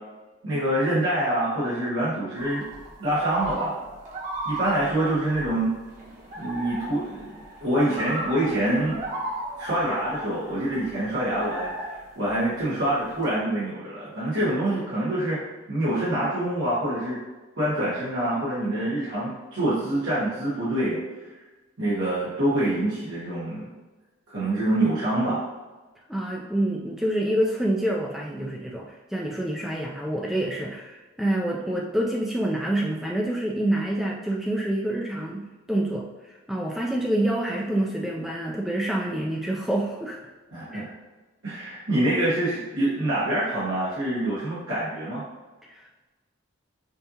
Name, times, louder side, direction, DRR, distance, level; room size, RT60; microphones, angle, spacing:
voice 1, 0.4-2.6 3.0-3.8 4.4-5.7 6.3-7.3 7.6-9.0 9.6-15.4 15.7-17.2 17.6-21.0 21.8-23.7 24.3-25.4 40.5-40.9 41.4-45.2, right 1 dB, 80° right, -10 dB, 1.4 m, -26 dB
sound 1, 2.4-13.2, right 1 dB, 40° right, 1.0 m, -36 dB
voice 2, 26.1-40.2 40.7-40.9 45.7-45.9, right 1 dB, ahead, -2 dB, 0.3 m, -27 dB
5.4 x 2.7 x 2.8 m, 1.2 s
head